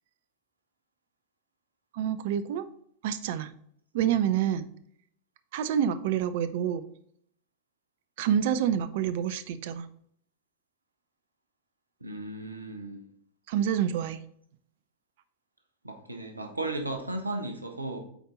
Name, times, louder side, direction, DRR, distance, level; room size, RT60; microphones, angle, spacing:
voice 1, 1.9-2.7 3.0-3.5 3.9-4.7 5.5-6.8 8.2-9.9 13.5-14.2, right 9 dB, 50° right, 13 dB, 0.6 m, -27 dB
voice 2, 12.0-13.0 15.8-18.0, right 2 dB, 80° right, 5 dB, 1.0 m, -35 dB
8.0 x 4.4 x 3.8 m, 0.65 s
figure-of-eight pair, 90°, 0 cm